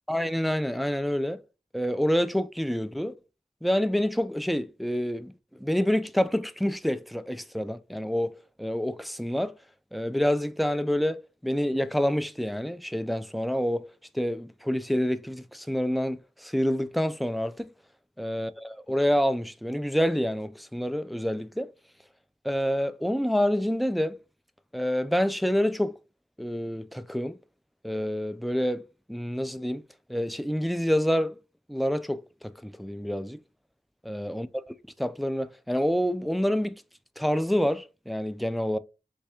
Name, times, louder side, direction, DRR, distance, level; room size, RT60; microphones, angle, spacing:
voice 1, 0.1-1.4 1.7-3.1 3.6-5.3 5.6-8.3 8.6-9.5 9.9-13.8 14.1-17.7 18.2-21.7 22.4-24.2 24.7-25.9 26.4-27.4 27.8-28.8 29.1-29.8 30.1-31.3 31.7-32.2 32.6-33.4 34.0-34.5 35.0-36.8 37.2-38.8, equal, ahead, 0.3 m, -27 dB
3.3 x 3.2 x 2.8 m
wide cardioid pair, 40°, 14 cm